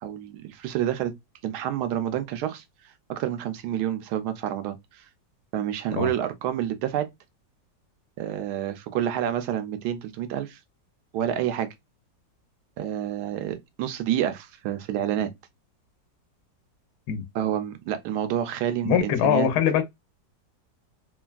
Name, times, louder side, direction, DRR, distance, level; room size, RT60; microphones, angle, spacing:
voice 1, 0.0-1.1 1.4-2.6 3.1-5.0 5.5-7.1 8.2-10.6 11.1-11.7 12.8-15.3 17.3-19.5, right 11 dB, 75° right, 1.1 m, -28 dB
voice 2, 18.8-19.8, left 9 dB, 70° left, 1.1 m, -22 dB
3.3 x 2.2 x 2.3 m
omnidirectional pair, 1.9 m